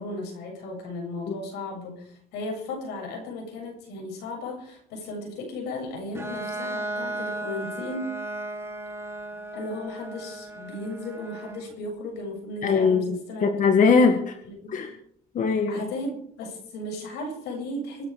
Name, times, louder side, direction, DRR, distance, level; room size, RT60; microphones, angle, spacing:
voice 1, 0.0-8.2 9.5-13.5 14.4-14.9 15.7-18.1, left 1 dB, 90° left, 2 dB, 7.6 m, -35 dB
Bowed string instrument, 6.1-11.7, right 1 dB, 15° right, 3.1 m, -35 dB
voice 2, 12.6-14.4 14.7-14.9 15.3-15.8, left 5 dB, 50° left, 5 dB, 1.9 m, -21 dB
25.5 x 10.0 x 4.9 m, 0.65 s
cardioid pair, 110°, 17 cm